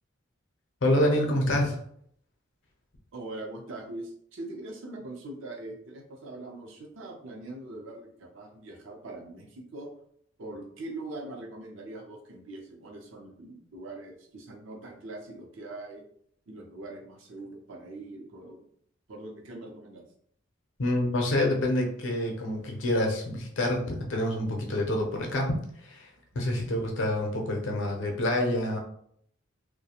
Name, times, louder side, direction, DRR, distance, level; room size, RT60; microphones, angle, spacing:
voice 1, 0.8-1.8 20.8-25.6 25.8-28.8, left 1 dB, 70° left, 2 dB, 0.6 m, -27 dB
voice 2, 3.1-9.9 10.4-16.0 16.5-18.6 19.1-20.0, right 2 dB, 75° right, 1 dB, 0.6 m, -42 dB
2.4 x 2.1 x 2.8 m, 0.66 s
head